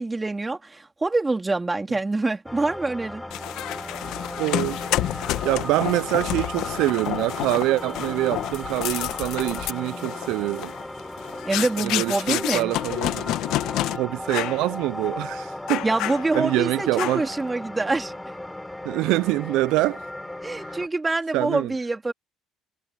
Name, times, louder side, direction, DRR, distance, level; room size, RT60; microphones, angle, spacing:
voice 1, 0.0-3.2 11.4-12.7 15.8-18.1 20.4-22.1, right 3 dB, 20° right, 3.7 m, -25 dB
sound 1, 2.5-20.9, left 1 dB, 10° left, 6.3 m, -36 dB
sound 2, 3.3-14.0 14.3-14.6 15.0-15.2 15.7-16.6 17.0-17.4, left 15 dB, 70° left, 1.5 m, -29 dB
voice 2, 4.4-4.9 5.4-10.7 11.8-13.3 13.9-17.4 18.8-20.0 20.6-20.9 21.3-21.8, right 18 dB, 75° right, 0.6 m, -25 dB
hypercardioid pair, 65°, 0 cm